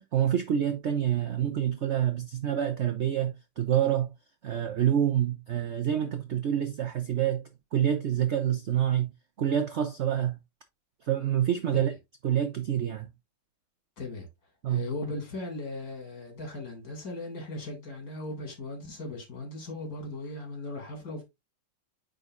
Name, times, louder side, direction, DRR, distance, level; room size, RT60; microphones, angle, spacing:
voice 1, 0.0-4.1 4.4-7.4 7.7-9.1 9.4-10.4 11.0-11.9 12.2-13.1 14.6-14.9, right 10 dB, 65° right, 0.6 m, -27 dB
voice 2, 14.0-14.3 14.7-21.2, left 2 dB, 55° left, 2.8 m, -38 dB
9.4 x 4.1 x 2.5 m
omnidirectional pair, 2.0 m